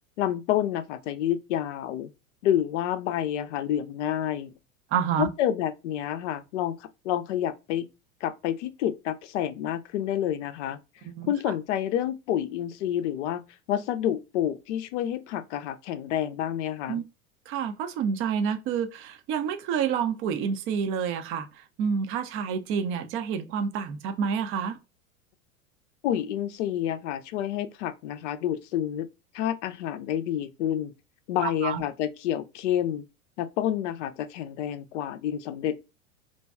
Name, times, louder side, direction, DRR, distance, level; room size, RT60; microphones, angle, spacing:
voice 1, 0.2-2.1 2.4-4.5 5.2-7.9 8.2-10.8 11.3-17.0 26.0-29.1 29.3-30.9 31.3-33.0 33.4-35.9, left 11 dB, 55° left, 0.5 m, -29 dB
voice 2, 4.9-5.3 11.0-11.3 16.9-17.0 17.5-21.5 21.8-24.8 31.4-31.8, right 7 dB, 30° right, 0.5 m, -28 dB
2.6 x 2.2 x 3.4 m
figure-of-eight pair, 90°, 42 cm